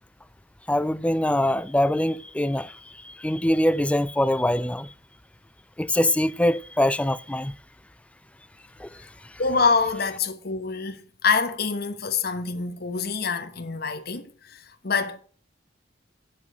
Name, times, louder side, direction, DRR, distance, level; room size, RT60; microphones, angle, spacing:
voice 1, 0.7-2.8 3.0-4.9 5.8-7.5 8.8-8.9, left 1 dB, 5° left, 0.4 m, -23 dB
voice 2, 9.4-15.2, left 4 dB, 60° left, 1.1 m, -26 dB
8.4 x 7.2 x 6.2 m
head